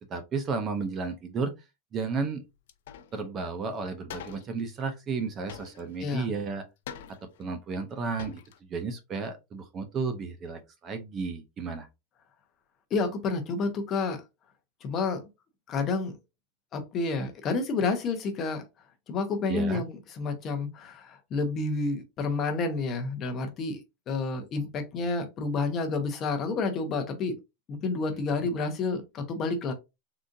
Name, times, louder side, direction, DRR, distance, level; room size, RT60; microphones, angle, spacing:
voice 1, 0.1-1.5 1.9-2.4 3.1-6.7 7.1-8.4 8.7-11.9 19.5-19.8, right 4 dB, 20° right, 0.4 m, -33 dB
sound 1, 2.7-3.2 3.5-3.6 4.1-4.6 5.5-6.2 6.9-7.5 7.9-8.0 8.2-8.6, left 9 dB, 70° left, 0.5 m, -44 dB
voice 2, 6.0-6.3 12.9-14.2 14.8-15.2 15.7-16.1 16.7-18.6 19.1-23.8 24.1-27.4 27.7-29.7, left 3 dB, 25° left, 0.7 m, -29 dB
3.7 x 2.4 x 2.6 m
supercardioid pair, 165°, 0 cm